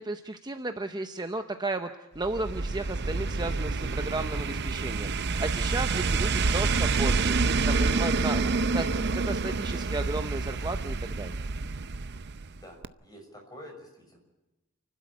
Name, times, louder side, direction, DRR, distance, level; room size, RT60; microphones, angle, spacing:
voice 1, 0.0-8.9 9.1-11.4, right 2 dB, 20° right, 7 dB, 0.8 m, -34 dB
sound 1, 2.2-12.6 12.8-12.9, right 3 dB, 55° right, 0.7 m, -28 dB
voice 2, 12.5-14.2, left 1 dB, 20° left, 2 dB, 6.3 m, -48 dB
29.5 x 12.0 x 8.4 m, 1.0 s
head